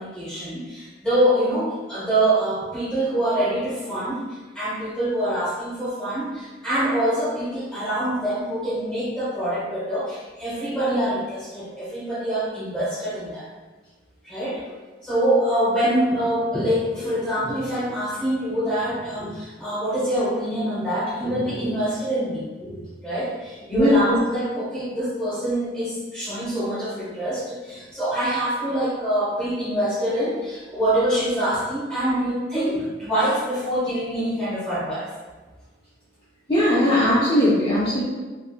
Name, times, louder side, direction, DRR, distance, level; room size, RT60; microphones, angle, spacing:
voice 1, 0.0-13.5 14.2-14.7 15.0-35.1, right 1 dB, 5° left, -10 dB, 1.1 m, -25 dB
voice 2, 23.7-24.2 36.5-38.0, left 1 dB, 25° left, -10 dB, 0.5 m, -19 dB
3.4 x 2.4 x 2.3 m, 1.3 s
head